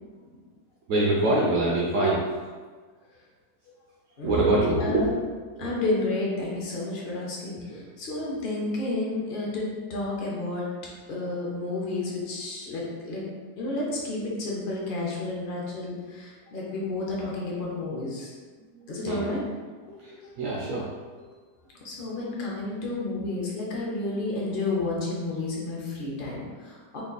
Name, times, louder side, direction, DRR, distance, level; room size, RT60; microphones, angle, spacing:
voice 1, 0.9-2.4 4.2-5.1 5.5-5.7 7.7-7.8 18.7-19.4 20.0-20.9, right 2 dB, 75° right, -5 dB, 0.7 m, -25 dB
voice 2, 4.2-5.1 5.6-9.6 9.9-10.7 11.1-13.2 13.6-18.3 18.9-19.4 19.8-20.3 21.8-27.0, left 2 dB, 60° left, -4 dB, 0.5 m, -31 dB
3.3 x 2.3 x 3.8 m, 1.5 s
omnidirectional pair, 1.9 m